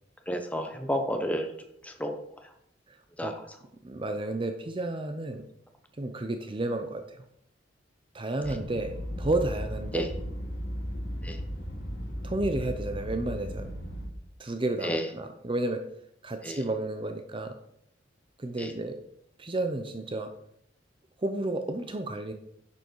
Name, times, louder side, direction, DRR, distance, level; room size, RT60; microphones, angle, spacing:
voice 1, 0.3-2.2 2.4-2.5 3.2-3.3 9.9-10.1 11.2-11.4 14.8-15.1 16.4-16.6 18.6-18.7, equal, 10° left, 5 dB, 1.1 m, -31 dB
voice 2, 3.8-5.4 6.0-7.2 8.1-10.1 12.2-13.7 14.4-15.8 16.2-17.5 18.4-19.0 19.4-20.3 21.2-22.3, right 2 dB, 30° right, 7 dB, 0.7 m, -31 dB
sound 1, 8.4-14.1, equal, 55° left, 3.1 m, -36 dB
10.0 x 6.9 x 4.7 m, 0.72 s
head